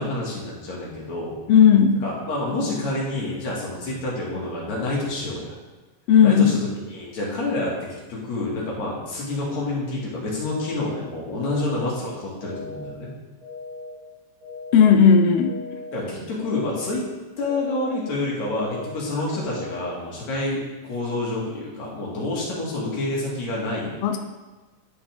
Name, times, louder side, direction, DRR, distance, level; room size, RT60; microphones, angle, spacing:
voice 1, 0.0-1.4 2.0-5.5 6.2-13.1 15.9-17.0 17.4-23.9, left 2 dB, 60° left, -5 dB, 3.2 m, -28 dB
voice 2, 1.5-2.0 6.1-6.5 14.7-15.5 24.0-24.2, left 7 dB, 85° left, 5 dB, 1.4 m, -14 dB
Busy Tone, 10.4-10.9 11.4-11.9 12.4-12.9 13.4-13.9 14.4-14.9 15.4-15.9 16.4-16.9 17.4-17.9 18.4-18.9 19.4-19.9, left 3 dB, 35° right, 2.1 m, -38 dB
11.0 x 5.7 x 3.5 m, 1.2 s
omnidirectional pair, 3.7 m